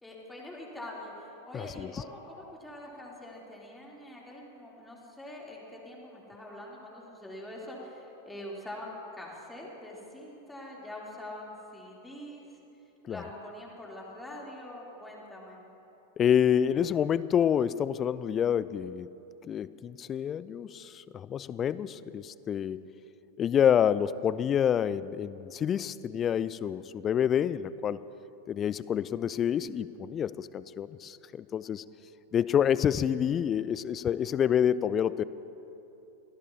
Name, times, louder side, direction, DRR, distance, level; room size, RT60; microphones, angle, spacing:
voice 1, 0.0-12.6 13.1-15.6, left 1 dB, 5° left, -4 dB, 3.4 m, -44 dB
voice 2, 1.5-1.9 13.0-13.2 16.2-19.1 19.4-22.9 23.4-28.0 28.5-31.8 32.3-35.2, left 9 dB, 25° left, 17 dB, 0.4 m, -28 dB
24.5 x 17.0 x 2.9 m, 3.0 s
figure-of-eight pair, 90°, 0 cm